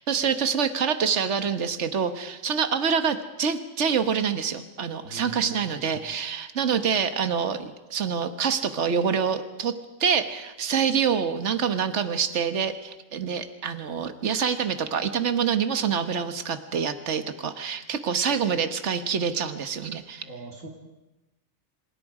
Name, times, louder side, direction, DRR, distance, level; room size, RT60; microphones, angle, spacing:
voice 1, 0.1-9.7 10.0-20.3, right 6 dB, 60° right, 9 dB, 1.6 m, -26 dB
voice 2, 5.0-6.0 20.2-20.7, right 4 dB, 75° right, 0 dB, 3.0 m, -41 dB
28.0 x 26.5 x 5.0 m, 1.0 s
omnidirectional pair, 1.4 m